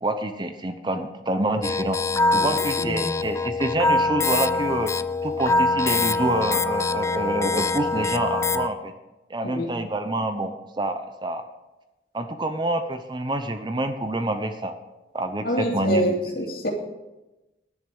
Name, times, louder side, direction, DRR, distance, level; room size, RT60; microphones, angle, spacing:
voice 1, 0.0-2.0 2.3-4.9 5.2-8.9 9.3-11.4 12.1-14.7 15.1-16.1, right 1 dB, 25° right, 8 dB, 0.8 m, -27 dB
sound 1, 1.6-8.7, left 3 dB, 15° left, 0.3 m, -24 dB
voice 2, 2.8-3.1 9.4-9.7 15.4-16.7, equal, 55° left, 0 dB, 2.7 m, -26 dB
11.0 x 10.0 x 6.2 m, 1.0 s
head